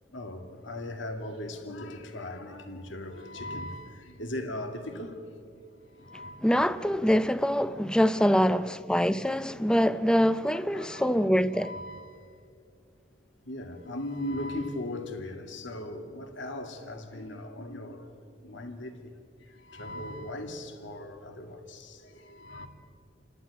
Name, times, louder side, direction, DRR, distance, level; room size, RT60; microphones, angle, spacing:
voice 1, 0.1-5.4 5.9-6.4 7.7-7.8 8.3-8.5 10.5-11.3 11.5-12.4 13.4-22.7, left 1 dB, 75° left, 2.2 m, -39 dB
voice 2, 6.4-11.8, equal, 5° left, 0.5 m, -24 dB
29.0 x 11.5 x 9.5 m
head